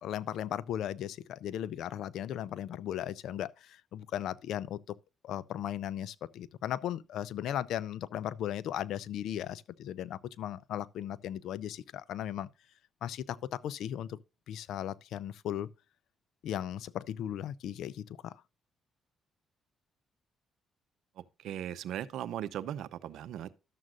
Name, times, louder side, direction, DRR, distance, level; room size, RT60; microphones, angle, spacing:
voice 1, 0.0-5.0 5.2-12.5 13.0-14.2 14.5-15.7 16.4-18.4, left 11 dB, 80° left, 0.5 m, -37 dB
voice 2, 21.2-23.5, right 10 dB, 80° right, 0.7 m, -38 dB
12.5 x 7.5 x 2.4 m
cardioid pair, 90°, 0 cm